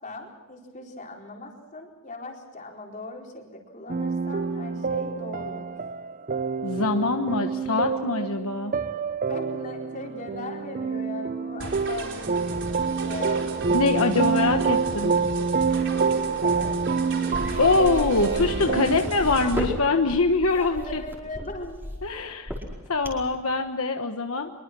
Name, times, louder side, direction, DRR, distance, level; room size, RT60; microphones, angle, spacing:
voice 1, 0.0-5.7 9.3-12.6 13.0-13.5 15.9-16.8 18.7-19.0 20.5-21.8 22.1-22.3, left 2 dB, 35° left, 0 dB, 4.4 m, -39 dB
sound 1, 3.9-19.0, right 5 dB, 40° right, 0.6 m, -27 dB
voice 2, 6.6-8.7 13.7-15.1 17.6-21.0 22.0-22.5 22.9-24.5, left 3 dB, 70° left, 5 dB, 1.2 m, -24 dB
sound 2, 11.6-19.6, right 2 dB, 55° right, 4.7 m, -36 dB
sound 3, 17.3-23.3, equal, 10° right, 4.9 m, -34 dB
24.5 x 23.5 x 6.1 m, 1.2 s
head